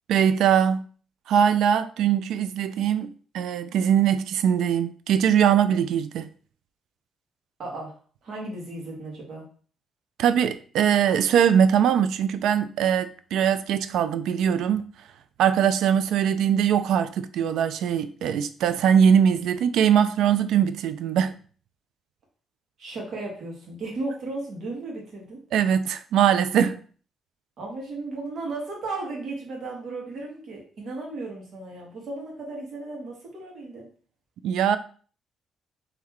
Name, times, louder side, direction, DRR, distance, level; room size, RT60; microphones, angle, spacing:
voice 1, 0.1-0.8 1.3-6.3 10.2-14.9 15.4-21.4 25.5-26.8 34.4-34.8, right 8 dB, 80° right, 0.3 m, -21 dB
voice 2, 7.6-7.9 8.2-9.4 22.8-25.4 27.6-33.9, right 2 dB, 60° right, 1.7 m, -35 dB
3.8 x 3.2 x 3.0 m
cardioid pair, 90°, 0 cm